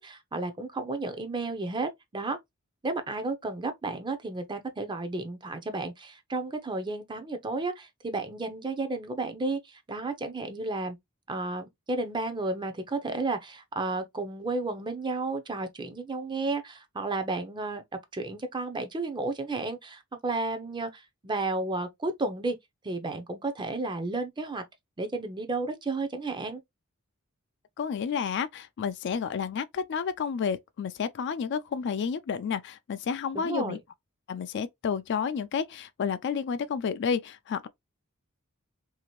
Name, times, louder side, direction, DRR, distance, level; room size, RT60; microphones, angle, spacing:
voice 1, 0.0-2.4 2.8-11.0 11.3-17.8 18.1-22.6 22.8-24.6 25.0-26.6 33.3-33.8, right 3 dB, 20° right, 0.5 m, -32 dB
voice 2, 27.8-33.8 34.3-37.7, left 6 dB, 55° left, 0.3 m, -31 dB
2.8 x 2.5 x 2.9 m
head